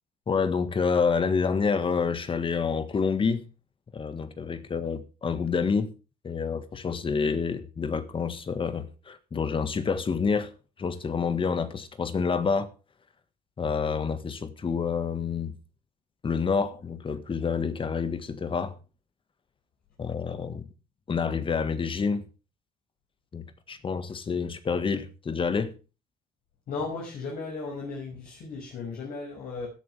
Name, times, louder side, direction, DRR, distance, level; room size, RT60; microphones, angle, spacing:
voice 1, 0.3-3.5 3.9-5.9 6.2-10.5 10.8-12.7 13.6-15.5 16.2-18.7 20.0-20.7 21.1-22.3 23.3-25.7, left 5 dB, 30° left, 1.7 m, -28 dB
voice 2, 26.7-29.7, left 4 dB, 60° left, 6.2 m, -35 dB
17.0 x 11.5 x 3.5 m
cardioid pair, 110°, 17 cm